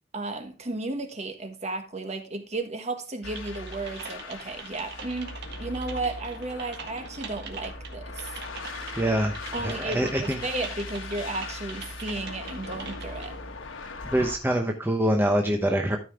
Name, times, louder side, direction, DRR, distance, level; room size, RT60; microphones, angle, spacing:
voice 1, 0.1-8.3 9.5-13.3, right 2 dB, 35° right, 1.4 m, -34 dB
sound 1, 3.2-14.4, left 3 dB, 85° left, 1.2 m, -39 dB
Typing, 3.3-13.3, right 5 dB, 60° right, 1.7 m, -42 dB
voice 2, 9.0-9.3 9.6-10.4 14.1-16.0, right 1 dB, 10° right, 0.9 m, -24 dB
13.0 x 5.3 x 3.6 m
head